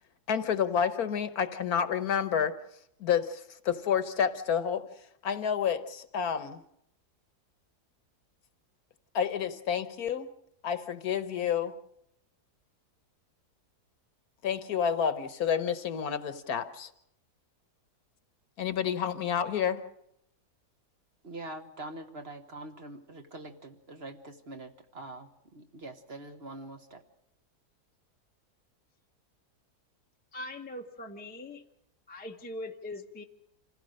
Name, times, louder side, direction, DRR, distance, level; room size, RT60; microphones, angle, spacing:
voice 1, 0.3-2.5 3.0-4.8 5.2-6.6 9.1-10.3 10.6-11.7 14.4-16.9 18.6-19.8, left 8 dB, 70° left, 11 dB, 1.4 m, -29 dB
voice 2, 21.2-27.0, right 2 dB, 40° right, 6 dB, 1.4 m, -44 dB
voice 3, 30.3-31.6 32.1-33.2, left 1 dB, 10° left, 3 dB, 0.7 m, -41 dB
26.5 x 16.0 x 6.5 m, 0.77 s
omnidirectional pair, 1.7 m